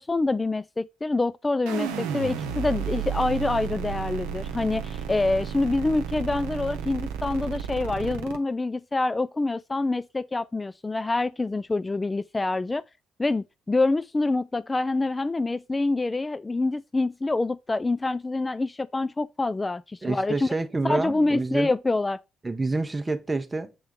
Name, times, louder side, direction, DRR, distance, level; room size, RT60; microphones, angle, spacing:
voice 1, 0.0-12.8 13.2-20.5 20.8-22.2, left 2 dB, 20° left, 0.4 m, -26 dB
sound 1, 1.7-8.4, right 8 dB, 75° right, 0.8 m, -32 dB
voice 2, 20.0-21.7 22.4-23.7, right 3 dB, 25° right, 0.8 m, -28 dB
7.6 x 3.4 x 5.3 m
hypercardioid pair, 45°, 0 cm